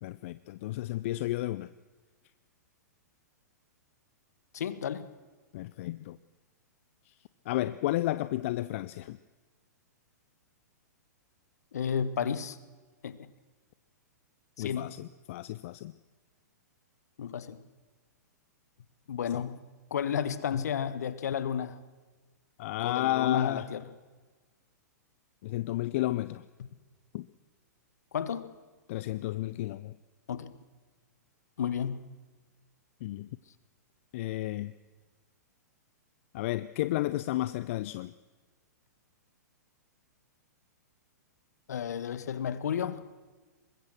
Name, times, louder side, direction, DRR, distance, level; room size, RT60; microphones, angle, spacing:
voice 1, 0.0-1.7 5.5-6.2 7.1-7.2 7.5-9.2 14.6-15.9 22.6-23.7 25.4-26.5 27.1-27.3 28.9-29.9 33.0-33.3 34.1-34.7 36.3-38.1, left 16 dB, 45° left, 15 dB, 0.6 m, -32 dB
voice 2, 4.5-5.1 11.7-12.6 13.0-13.3 14.6-14.9 17.2-17.6 19.1-19.6 19.9-21.8 22.8-23.8 28.1-28.5 30.3-30.5 31.6-32.0 41.7-43.1, left 8 dB, 65° left, 15 dB, 1.5 m, -32 dB
24.0 x 21.0 x 6.2 m, 1.3 s
figure-of-eight pair, 110°, 9 cm